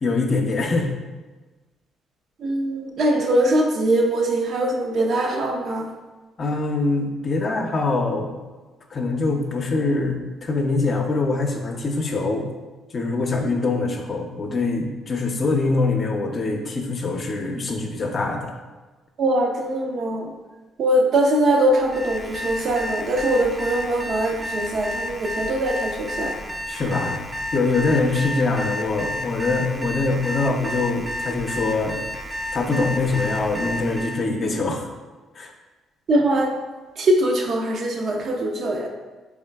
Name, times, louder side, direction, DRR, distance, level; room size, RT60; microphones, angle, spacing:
voice 1, 0.0-0.9 6.4-8.4 8.9-12.5 12.9-18.5 26.4-27.2 27.5-32.0 32.5-34.9 35.3-35.5, left 3 dB, 45° left, 2 dB, 0.6 m, -23 dB
voice 2, 2.4-5.9 19.2-20.3 20.8-26.3 36.1-36.5 37.0-38.9, right 1 dB, 60° right, 1 dB, 0.6 m, -22 dB
Alarm, 21.8-34.3, left 1 dB, 10° right, 0.5 m, -31 dB
3.8 x 3.5 x 2.2 m, 1.2 s
supercardioid pair, 55°, 0 cm